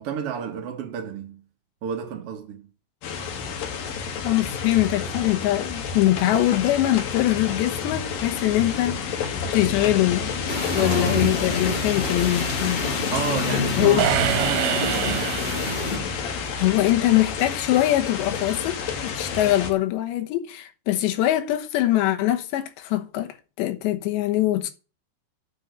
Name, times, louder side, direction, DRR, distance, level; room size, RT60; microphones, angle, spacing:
voice 1, 0.0-1.4 1.8-2.7 10.8-11.3 13.1-15.3, right 7 dB, 65° right, 1.5 m, -31 dB
sound 1, 3.0-19.7, left 6 dB, 65° left, 3.1 m, -29 dB
voice 2, 4.2-9.0 9.5-10.3 10.7-12.8 13.8-14.1 16.6-24.7, left 14 dB, 85° left, 3.4 m, -22 dB
sound 2, 10.5-16.0, left 1 dB, 15° left, 1.7 m, -31 dB
sound 3, 14.0-16.2, right 14 dB, 85° right, 3.0 m, -26 dB
9.3 x 6.5 x 8.1 m
omnidirectional pair, 5.0 m